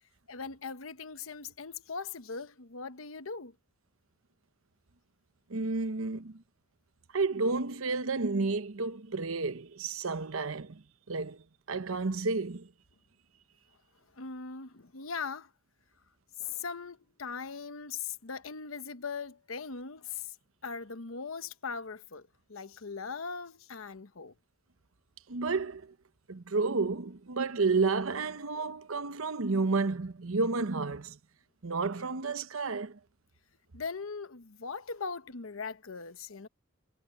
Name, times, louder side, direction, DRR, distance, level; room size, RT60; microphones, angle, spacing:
voice 1, 0.3-3.5 14.2-15.5 16.4-20.2 20.6-22.2 22.5-24.3 33.7-36.5, left 5 dB, 80° left, 1.0 m, -40 dB
voice 2, 5.5-6.4 7.1-10.8 11.1-11.4 11.7-12.7 25.3-25.9 26.3-31.2 31.6-33.0, right 3 dB, 80° right, 0.9 m, -31 dB
head